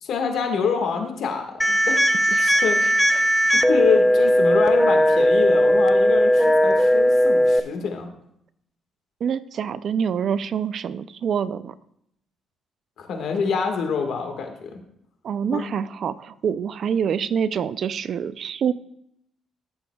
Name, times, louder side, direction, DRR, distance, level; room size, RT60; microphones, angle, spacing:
voice 1, 0.0-2.0 2.4-2.9 3.5-8.1 13.0-14.8 15.5-15.6, left 6 dB, 70° left, 4 dB, 1.6 m, -26 dB
sound 1, 1.6-7.6, equal, 5° left, 0.5 m, -18 dB
voice 2, 2.8-3.4 9.2-11.7 15.2-18.7, right 7 dB, 60° right, 16 dB, 0.4 m, -26 dB
14.0 x 7.0 x 2.3 m, 0.75 s
cardioid pair, 90°, 0 cm